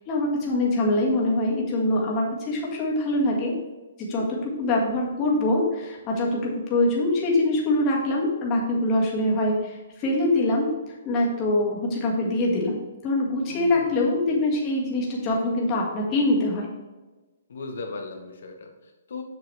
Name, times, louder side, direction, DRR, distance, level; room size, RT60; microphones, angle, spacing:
voice 1, 0.1-3.5 4.0-16.7, left 1 dB, 20° left, -3 dB, 1.5 m, -24 dB
voice 2, 13.5-14.2 17.5-19.2, left 3 dB, 65° left, 3 dB, 0.9 m, -38 dB
7.1 x 6.2 x 3.2 m, 1.2 s
hypercardioid pair, 170°, 0 cm